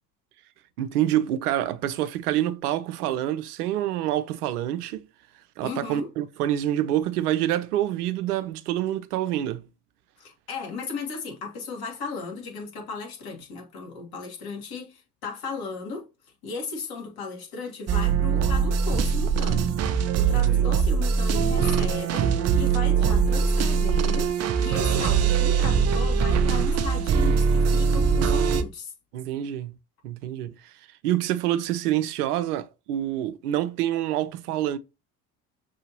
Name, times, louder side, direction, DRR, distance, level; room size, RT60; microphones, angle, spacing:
voice 1, 0.8-5.0 5.6-9.7 20.3-20.7 29.1-29.8 30.0-30.7 31.0-34.8, right 12 dB, 75° right, 0.6 m, -27 dB
voice 2, 5.6-6.1 10.2-16.1 16.4-28.9, left 4 dB, 50° left, 1.9 m, -36 dB
sound 1, 17.9-28.6, right 6 dB, 35° right, 0.6 m, -22 dB
6.1 x 2.7 x 2.9 m
hypercardioid pair, 65°, 46 cm